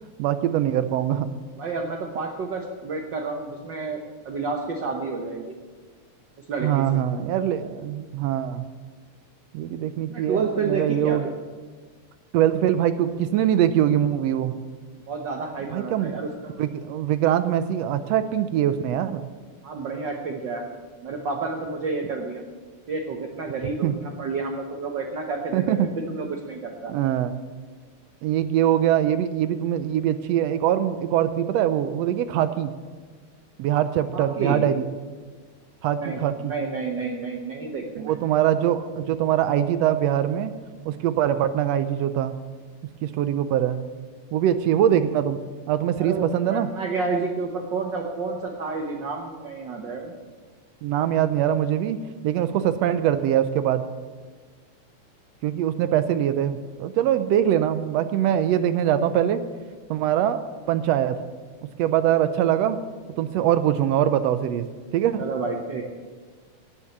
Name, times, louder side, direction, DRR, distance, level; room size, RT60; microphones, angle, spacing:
voice 1, 0.2-1.3 6.6-8.7 9.5-11.3 12.3-14.6 15.7-16.2 16.6-19.2 23.8-23.9 25.5-25.9 26.9-27.3 28.2-32.7 33.6-34.8 35.8-36.5 38.0-40.5 40.8-42.3 43.0-43.8 44.3-45.4 45.7-46.7 50.8-53.8 55.4-59.4 59.9-61.2 61.8-62.8 63.2-64.6 64.9-65.2, right 10 dB, 80° right, 11 dB, 1.5 m, -23 dB
voice 2, 1.6-4.0 4.2-5.5 6.5-7.0 10.1-11.2 15.1-16.5 19.6-20.6 21.0-22.4 22.9-26.9 34.1-34.7 35.9-38.2 46.0-50.1 65.2-65.8, right 4 dB, 60° right, 2 dB, 1.2 m, -30 dB
17.5 x 7.4 x 7.3 m, 1.4 s
omnidirectional pair, 3.5 m